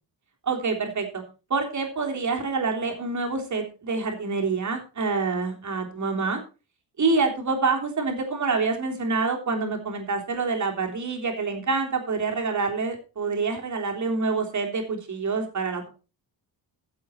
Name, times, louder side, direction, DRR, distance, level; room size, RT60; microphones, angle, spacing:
voice 1, 0.4-1.2 1.5-6.4 7.0-15.9, right 4 dB, 40° right, 2 dB, 3.3 m, -27 dB
15.0 x 7.9 x 4.3 m, 0.32 s
wide cardioid pair, 160°, 43 cm